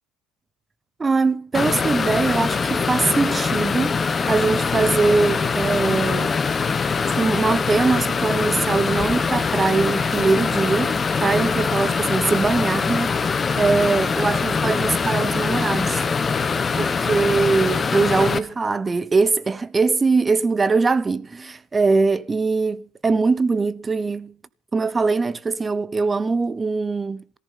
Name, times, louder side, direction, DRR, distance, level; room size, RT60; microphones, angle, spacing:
voice 1, 1.0-6.3 7.1-16.0 16.3-16.4 16.8-24.3 24.7-27.2, right 4 dB, 20° right, 0.8 m, -22 dB
sound 1, 1.5-18.4, left 5 dB, 25° left, 1.2 m, -23 dB
17.5 x 14.5 x 5.7 m
cardioid pair, 130°, 0 cm